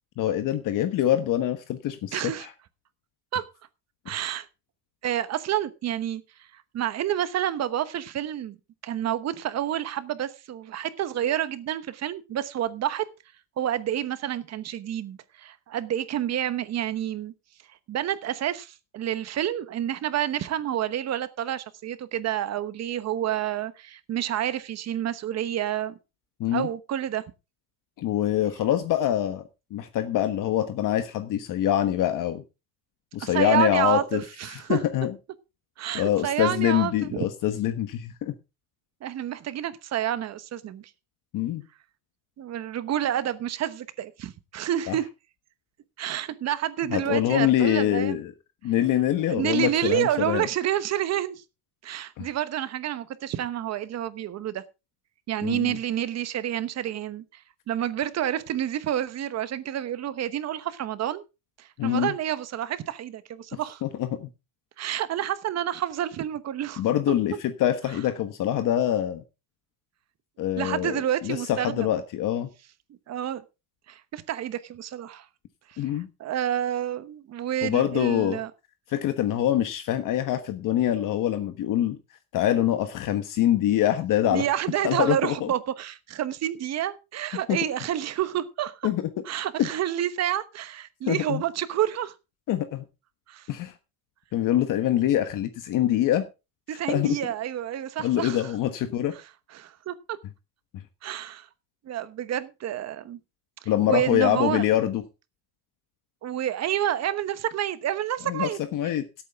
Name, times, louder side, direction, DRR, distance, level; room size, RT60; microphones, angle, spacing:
voice 1, 0.2-2.5 26.4-26.7 28.0-32.4 33.1-34.2 34.7-35.1 35.9-38.3 41.3-41.6 44.9-45.0 46.9-48.3 48.6-50.5 52.2-52.3 55.4-55.8 61.8-62.1 63.5-64.3 66.8-69.2 70.4-72.5 75.8-76.1 77.6-78.4 78.9-82.0 82.3-84.5 84.8-85.5 87.5-87.6 88.8-89.1 89.6-89.7 91.1-91.4 92.5-92.8 93.5-93.7 94.3-96.3 96.9-97.2 98.0-99.1 103.7-105.0 108.3-109.0, left 12 dB, 55° left, 1.4 m, -25 dB
voice 2, 2.1-2.5 3.3-3.4 4.1-4.5 5.0-6.2 6.5-8.6 8.8-13.0 13.6-17.3 17.9-26.0 26.5-27.2 33.2-34.8 35.8-37.2 39.0-40.9 42.4-45.1 46.0-48.2 49.3-51.4 51.8-54.6 55.3-57.4 57.7-61.2 61.6-63.8 64.8-67.1 70.5-71.9 73.1-73.4 73.9-75.3 75.7-75.8 76.2-78.5 84.3-88.9 89.3-92.1 93.3-93.5 96.7-98.5 99.5-100.2 101.0-101.5 101.8-103.2 103.9-104.6 106.2-108.6, right 11 dB, 45° right, 1.1 m, -29 dB
17.0 x 8.6 x 3.6 m
cardioid pair, 140°, 38 cm